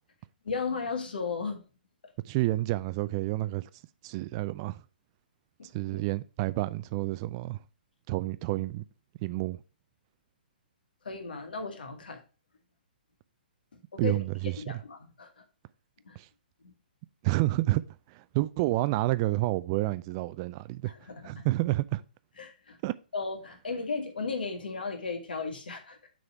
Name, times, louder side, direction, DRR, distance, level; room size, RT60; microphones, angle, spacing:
voice 1, 0.4-1.6 5.6-6.0 11.0-12.2 13.9-14.2 14.6-15.4 16.1-16.2 16.6-16.7 20.9-21.5 22.4-22.8 23.1-26.1, left 4 dB, 65° left, 1.8 m, -35 dB
voice 2, 2.3-3.6 4.0-4.8 5.7-7.6 8.1-8.8 9.2-9.6 14.0-14.8 16.2-16.3 17.2-17.8 18.1-20.9 21.2-22.0 22.8-22.9, right 18 dB, 30° right, 0.3 m, -29 dB
6.5 x 3.9 x 5.9 m
figure-of-eight pair, 125°, 5 cm